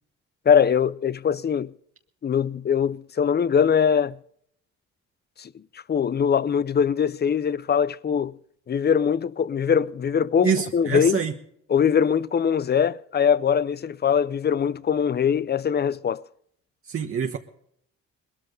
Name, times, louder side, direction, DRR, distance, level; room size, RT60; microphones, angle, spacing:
voice 1, 0.5-1.7 2.2-4.2 5.4-5.5 5.9-8.4 8.7-11.2 11.7-16.2, left 7 dB, 35° left, 0.6 m, -22 dB
voice 2, 10.4-11.3 16.9-17.4, right 7 dB, 45° right, 1.3 m, -25 dB
20.5 x 13.0 x 4.0 m
cardioid pair, 90°, 30 cm